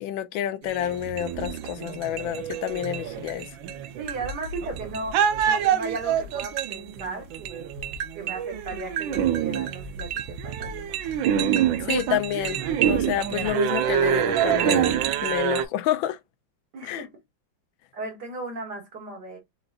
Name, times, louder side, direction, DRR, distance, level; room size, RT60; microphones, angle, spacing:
voice 1, 0.0-3.5 11.9-12.6 12.9-16.2 16.8-17.0, left 12 dB, 85° left, 1.4 m, -29 dB
sound 1, 0.6-15.6, right 9 dB, 80° right, 1.4 m, -26 dB
voice 2, 4.0-5.2 5.5-7.7 8.2-10.7 16.7-17.1 17.9-19.4, right 3 dB, 60° right, 2.2 m, -36 dB
5.0 x 4.0 x 2.3 m
omnidirectional pair, 2.1 m